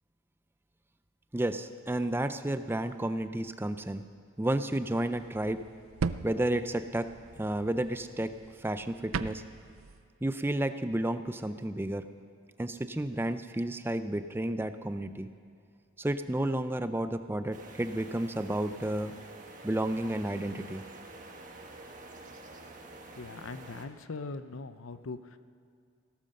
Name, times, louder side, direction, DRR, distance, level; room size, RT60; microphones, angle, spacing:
voice 1, 1.3-4.0 4.4-5.6 6.2-9.4 10.2-12.0 12.6-15.3 16.0-19.1 19.6-20.8, right 1 dB, 10° right, 10 dB, 0.4 m, -31 dB
sound 1, 5.1-10.0, right 5 dB, 90° right, 0.5 m, -39 dB
sound 2, 17.5-23.9, right 2 dB, 40° right, 1.4 m, -48 dB
voice 2, 23.2-25.4, left 3 dB, 75° left, 12 dB, 0.7 m, -41 dB
16.5 x 13.0 x 6.6 m, 2.4 s
head